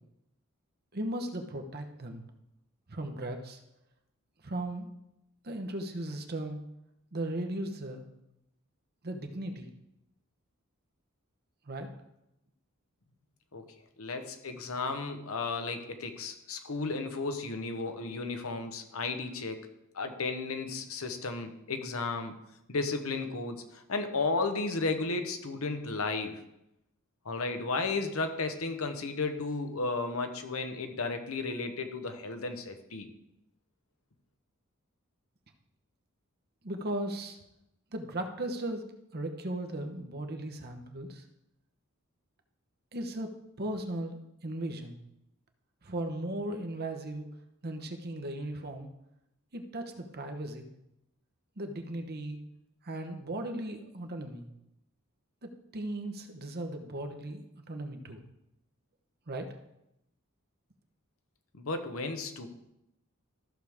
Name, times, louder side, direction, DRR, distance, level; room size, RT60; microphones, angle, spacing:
voice 1, 0.9-2.2 2.9-3.6 4.4-4.9 5.4-6.6 7.1-8.1 9.0-9.7 11.7-11.9 36.6-37.4 37.9-38.8 39.1-41.2 42.9-45.0 45.8-47.3 47.6-48.9 49.5-50.7 51.6-52.4 52.8-54.5 55.4-58.2 59.3-59.5, right 1 dB, 45° right, 5 dB, 1.1 m, -37 dB
voice 2, 14.0-19.7 19.9-22.3 22.7-26.4 27.2-33.1 61.5-62.5, left 3 dB, 75° left, 6 dB, 1.1 m, -34 dB
14.0 x 6.4 x 3.6 m, 0.84 s
head